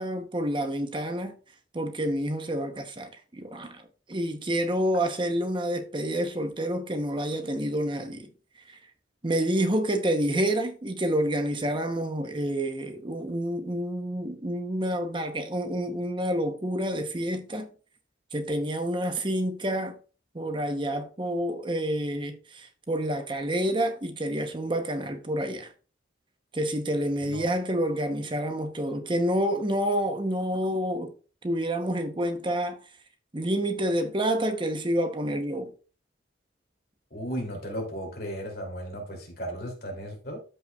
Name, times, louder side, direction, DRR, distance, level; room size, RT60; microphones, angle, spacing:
voice 1, 0.0-1.3 1.7-3.8 4.1-8.3 8.7-8.8 9.2-17.7 18.3-20.0 20.3-25.7 26.5-31.1 31.4-32.8 33.3-35.7, right 1 dB, 25° right, 0.8 m, -28 dB
voice 2, 37.1-40.4, equal, 55° left, 2.8 m, -35 dB
13.5 x 5.5 x 2.3 m
head